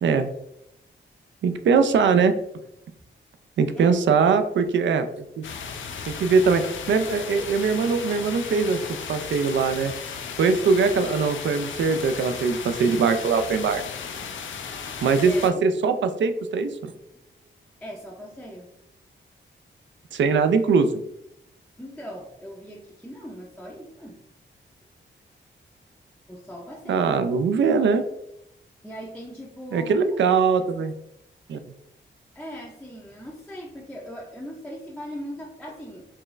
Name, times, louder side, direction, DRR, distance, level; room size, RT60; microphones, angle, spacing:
voice 1, 1.4-2.3 3.6-5.0 5.4-5.5 6.1-6.6 6.9-8.8 9.1-9.9 10.4-13.8 15.0-16.9 20.1-20.9 26.9-28.0 29.7-30.9 31.5-31.6, right 5 dB, 75° right, 9 dB, 0.4 m, -21 dB
sound 1, 5.4-15.5, left 6 dB, 90° left, 0.5 m, -35 dB
voice 2, 15.2-15.6 17.1-17.5 17.8-18.7 21.8-24.2 26.3-27.1 28.8-30.0 32.3-36.0, equal, 5° left, -3 dB, 0.5 m, -39 dB
4.5 x 2.4 x 3.1 m, 0.81 s
wide cardioid pair, 135°, 19 cm